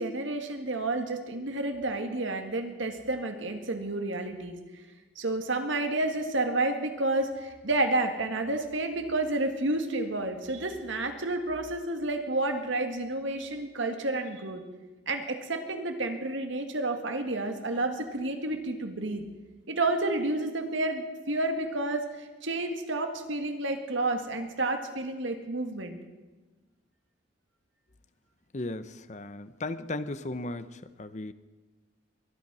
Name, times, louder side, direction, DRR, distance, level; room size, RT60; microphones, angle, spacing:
voice 1, 0.0-4.6 5.2-14.6 15.1-19.2 19.7-26.0, right 2 dB, 80° right, 6 dB, 1.8 m, -30 dB
voice 2, 28.5-31.3, left 2 dB, 35° left, 12 dB, 0.7 m, -36 dB
22.5 x 10.5 x 6.2 m, 1.2 s
head